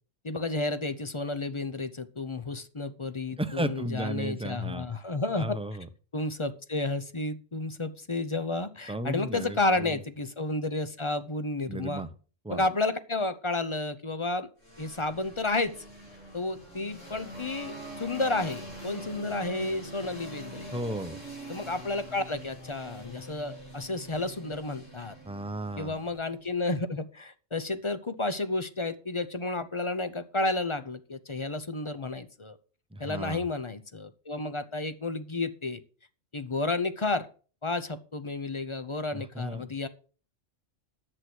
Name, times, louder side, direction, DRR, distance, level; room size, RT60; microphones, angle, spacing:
voice 1, 0.2-5.6 6.1-12.0 12.5-14.5 14.8-15.7 16.3-20.7 21.5-25.2 25.8-32.6 33.0-35.8 36.3-37.3 37.6-39.9, left 2 dB, 30° left, 12 dB, 0.8 m, -31 dB
voice 2, 3.4-4.9 5.4-5.9 8.9-10.0 11.7-12.1 12.4-12.6 20.7-21.2 25.2-26.0 32.9-33.4 39.1-39.7, right 1 dB, 5° right, 10 dB, 0.8 m, -34 dB
sound 1, 14.6-26.4, right 1 dB, 90° left, 8.2 m, -44 dB
10.5 x 8.2 x 6.1 m, 0.39 s
omnidirectional pair, 1.3 m